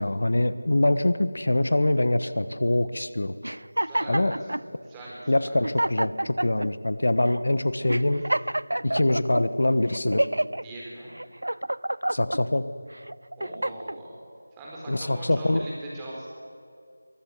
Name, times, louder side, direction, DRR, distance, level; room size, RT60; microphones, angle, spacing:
voice 1, 0.0-3.3 4.1-4.3 5.3-8.2 8.8-10.3 12.1-12.7 14.9-15.6, left 1 dB, 70° left, 14 dB, 1.2 m, -24 dB
sound 1, 3.4-4.6 5.3-5.4 5.6-6.7 7.3-7.4 7.9-9.4 9.9-10.6 11.1-12.4 13.0-14.0, right 1 dB, 85° right, 0.4 m, -28 dB
voice 2, 3.8-4.5 4.8-5.6 10.6-11.1 13.4-14.2 14.6-16.4, right 1 dB, 10° right, -5 dB, 4.2 m, -40 dB
23.0 x 13.5 x 8.4 m, 2.2 s
figure-of-eight pair, 170°, 0 cm